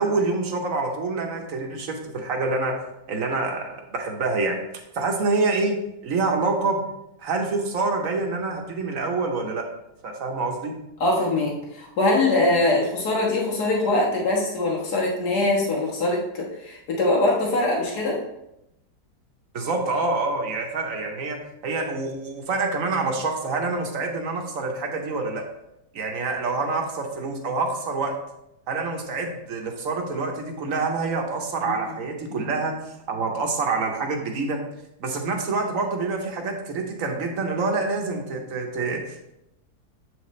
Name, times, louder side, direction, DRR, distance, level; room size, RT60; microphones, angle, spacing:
voice 1, 0.0-2.7 3.1-4.6 4.9-5.8 6.0-6.8 7.2-9.7 10.0-10.7 19.5-21.4 21.6-25.4 25.9-28.1 28.7-34.6 35.0-39.4, right 3 dB, 60° right, 3 dB, 1.2 m, -26 dB
voice 2, 11.0-18.2 32.3-32.5, left 2 dB, 75° left, -2 dB, 1.9 m, -23 dB
7.4 x 4.9 x 3.1 m, 0.85 s
omnidirectional pair, 1.7 m